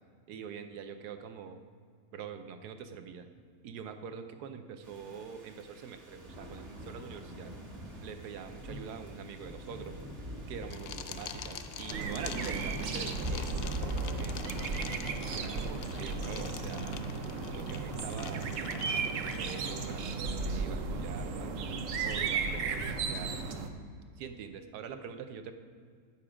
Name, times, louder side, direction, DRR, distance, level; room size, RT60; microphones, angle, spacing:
voice 1, 0.3-1.6 2.1-3.3 3.6-7.5 8.0-10.0 10.5-14.9 15.2-16.9 17.4-21.7 22.0-23.4 24.2-25.5, right 7 dB, 80° right, 8 dB, 1.3 m, -44 dB
sound 1, 4.8-14.4, equal, 45° right, 1.8 m, -42 dB
sound 2, 10.7-20.0, left 8 dB, 80° left, 0.5 m, -45 dB
sound 3, 11.9-23.7, right 4 dB, 60° right, 1.0 m, -35 dB
9.3 x 7.1 x 5.0 m, 2.1 s
omnidirectional pair, 1.7 m